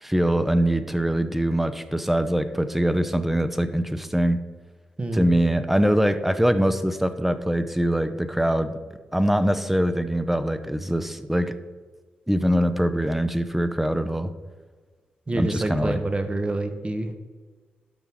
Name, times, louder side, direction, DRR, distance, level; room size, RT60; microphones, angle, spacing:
voice 1, 0.0-4.4 5.1-8.8 9.1-11.6 12.3-14.3 15.3-16.0, right 1 dB, 5° right, 11 dB, 0.7 m, -23 dB
voice 2, 5.0-5.4 15.3-17.1, right 2 dB, 30° right, 7 dB, 1.2 m, -27 dB
12.0 x 5.7 x 3.7 m, 1.4 s
cardioid pair, 60°, 4 cm